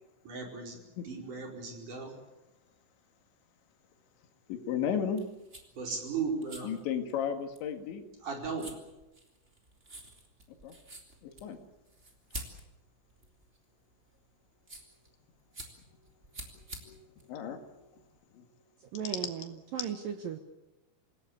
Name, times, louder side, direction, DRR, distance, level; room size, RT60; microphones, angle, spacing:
voice 1, 0.2-2.1 5.8-6.7 8.2-8.8, right 5 dB, 40° right, 1 dB, 5.8 m, -36 dB
voice 2, 4.5-5.2 6.6-8.0 10.6-10.8 11.2-11.6 16.8-17.0 17.3-17.9 18.3-18.4, left 8 dB, 70° left, 5 dB, 4.2 m, -34 dB
sound 1, 5.1-18.2, right 1 dB, 15° right, 2.8 m, -49 dB
voice 3, 18.8-20.4, right 8 dB, 75° right, 6 dB, 2.1 m, -37 dB
27.0 x 18.0 x 8.5 m, 0.99 s
omnidirectional pair, 5.7 m